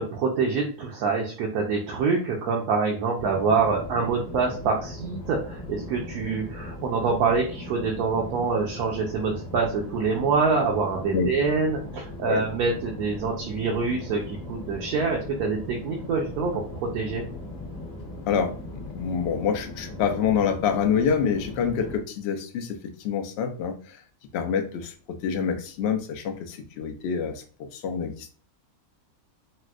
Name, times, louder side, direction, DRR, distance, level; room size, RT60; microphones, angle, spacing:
voice 1, 0.0-17.3, right 4 dB, 75° right, -1 dB, 1.1 m, -26 dB
sound 1, 3.2-22.0, left 2 dB, 45° left, 1.0 m, -39 dB
voice 2, 18.3-24.0 24.3-28.3, left 7 dB, 70° left, 5 dB, 0.6 m, -27 dB
4.2 x 2.0 x 2.3 m, 0.41 s
omnidirectional pair, 1.6 m